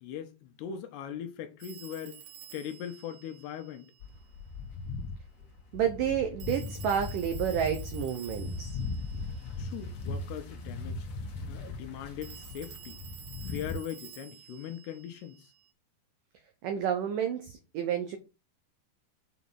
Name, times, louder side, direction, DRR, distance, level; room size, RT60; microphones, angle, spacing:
voice 1, 0.0-2.2 2.5-3.8 9.6-11.1 11.5-13.0 13.4-15.5, left 9 dB, 75° left, 2.7 m, -40 dB
Telephone, 1.6-4.3 6.4-10.0 12.2-15.7, right 11 dB, 75° right, 3.4 m, -51 dB
sound 1, 4.0-13.7, left 3 dB, 60° left, 1.7 m, -38 dB
voice 2, 5.7-8.7 16.6-18.2, right 8 dB, 90° right, 1.8 m, -30 dB
7.2 x 5.6 x 4.0 m
omnidirectional pair, 5.2 m